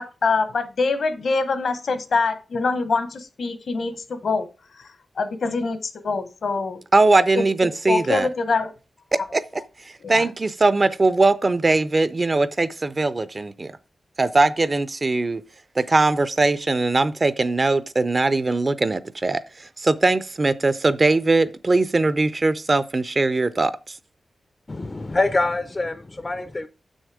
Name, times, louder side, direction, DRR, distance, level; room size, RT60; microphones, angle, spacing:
voice 1, 0.0-4.5 5.2-5.8 6.0-6.8 7.3-7.5 7.9-8.7 10.0-10.2, left 4 dB, 65° left, 1.0 m, -24 dB
voice 2, 6.9-8.3 9.1-13.8 14.2-15.4 15.8-24.0, right 3 dB, 30° right, 0.5 m, -21 dB
voice 3, 24.7-26.7, left 2 dB, 25° left, 0.5 m, -25 dB
7.3 x 6.4 x 4.8 m
wide cardioid pair, 140°, 0 cm